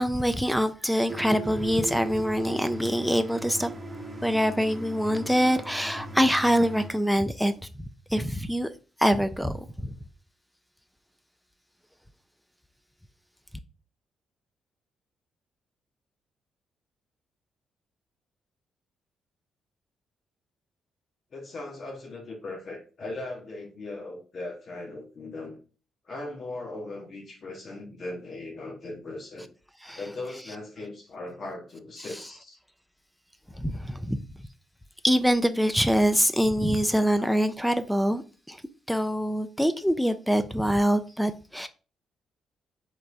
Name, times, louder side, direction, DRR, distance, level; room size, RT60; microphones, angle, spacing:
voice 1, 0.0-3.7 4.2-7.5 8.1-8.7 9.0-9.9 29.9-30.0 33.6-34.2 35.0-38.6 38.9-41.7, equal, ahead, 0.4 m, -24 dB
sound 1, 1.1-6.9, right 1 dB, 25° right, 1.0 m, -38 dB
voice 2, 21.3-25.6 26.0-29.5 29.9-32.6, left 2 dB, 55° left, 1.5 m, -38 dB
3.7 x 3.3 x 3.4 m
cardioid pair, 75°, 0 cm